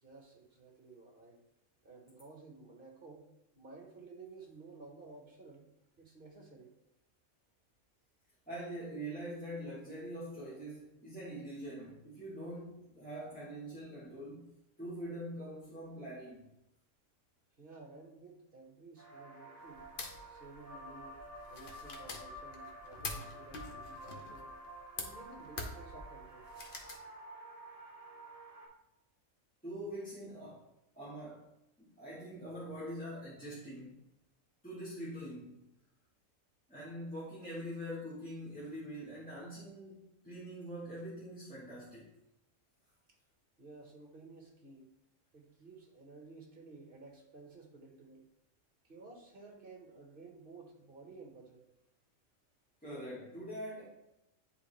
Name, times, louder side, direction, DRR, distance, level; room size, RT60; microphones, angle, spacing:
voice 1, 0.0-1.4 1.8-5.7 6.0-6.7 17.6-19.9 20.3-24.5 25.0-26.5 43.6-44.9 45.3-48.2 48.8-51.6, right 3 dB, 40° right, 1 dB, 1.5 m, -54 dB
voice 2, 8.5-14.5 14.8-16.5 29.6-30.6 31.0-31.5 31.8-34.0 34.6-35.7 36.7-42.1 52.8-53.8, equal, 5° left, -8 dB, 1.3 m, -44 dB
sound 1, 19.0-28.7, right 1 dB, 10° right, 2.6 m, -50 dB
sound 2, 19.7-27.0, left 3 dB, 45° left, 0.9 m, -46 dB
10.0 x 3.5 x 3.3 m, 0.86 s
omnidirectional pair, 1.4 m